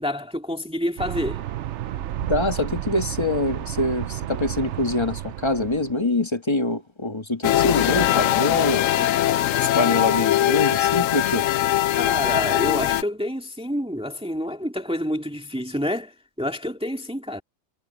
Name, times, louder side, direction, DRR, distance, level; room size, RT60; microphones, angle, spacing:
voice 1, 0.0-1.4 11.9-17.4, left 1 dB, 5° right, 2.3 m, -28 dB
sound 1, 1.0-5.9, right 12 dB, 70° right, 0.9 m, -31 dB
voice 2, 2.3-8.8 9.5-11.5, left 2 dB, 20° left, 1.7 m, -25 dB
sound 2, 7.4-13.0, left 13 dB, 85° left, 1.0 m, -21 dB
omnidirectional pair, 1.3 m